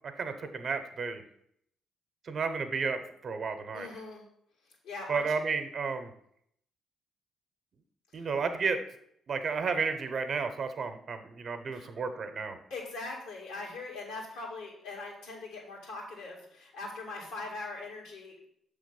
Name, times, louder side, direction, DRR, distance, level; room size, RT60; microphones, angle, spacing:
voice 1, 0.2-1.2 2.3-3.9 5.1-6.1 8.1-8.8 9.3-12.6, right 5 dB, 55° right, 8 dB, 0.8 m, -32 dB
voice 2, 3.7-4.3 4.8-5.3 8.1-8.3 11.7-11.9 12.7-18.4, left 3 dB, 85° left, -4 dB, 2.1 m, -41 dB
6.5 x 3.5 x 5.3 m, 0.70 s
hypercardioid pair, 50°, 0 cm